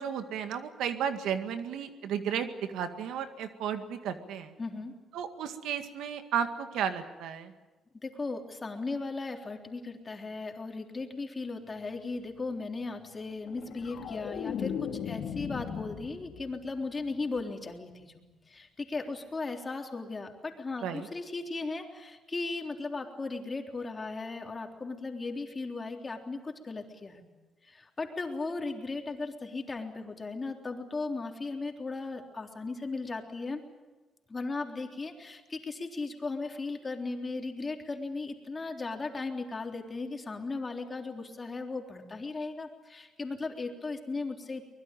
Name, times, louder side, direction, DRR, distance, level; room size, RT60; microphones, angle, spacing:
voice 1, 0.0-4.5 5.1-7.5 20.8-21.1, right 8 dB, 85° right, 8 dB, 1.9 m, -33 dB
voice 2, 4.6-4.9 8.0-27.2 27.6-33.6 34.3-44.7, left 3 dB, 30° left, 3 dB, 3.6 m, -37 dB
sound 1, 13.5-16.7 17.0-17.4, left 8 dB, 70° left, 2.0 m, -37 dB
24.0 x 20.5 x 9.1 m, 1.2 s
cardioid pair, 90°, 0 cm